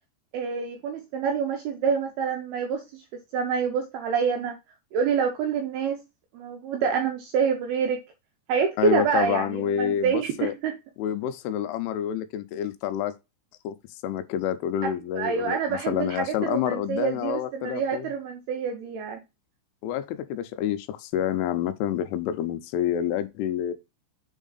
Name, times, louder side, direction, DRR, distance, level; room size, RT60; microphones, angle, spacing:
voice 1, 0.3-3.0 3.3-4.6 4.9-6.0 6.3-8.0 8.5-10.7 15.1-19.2, right 6 dB, 75° right, 2.4 m, -27 dB
voice 2, 8.8-10.5 11.0-13.2 13.6-13.8 14.0-18.1 19.8-23.7, left 10 dB, 85° left, 3.2 m, -28 dB
7.3 x 3.6 x 4.0 m
omnidirectional pair, 5.6 m